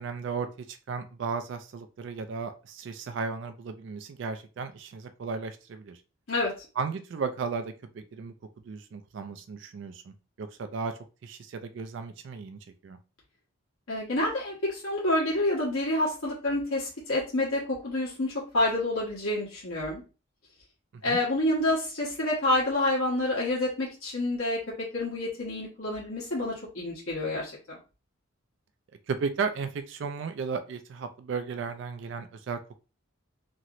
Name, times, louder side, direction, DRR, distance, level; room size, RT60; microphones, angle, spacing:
voice 1, 0.0-6.0 6.8-8.3 8.7-13.0 21.1-21.2 29.1-32.8, right 5 dB, 55° right, 9 dB, 0.3 m, -35 dB
voice 2, 13.9-20.0 21.0-27.8, left 1 dB, 75° left, -5 dB, 1.3 m, -28 dB
3.0 x 2.9 x 2.5 m, 0.33 s
head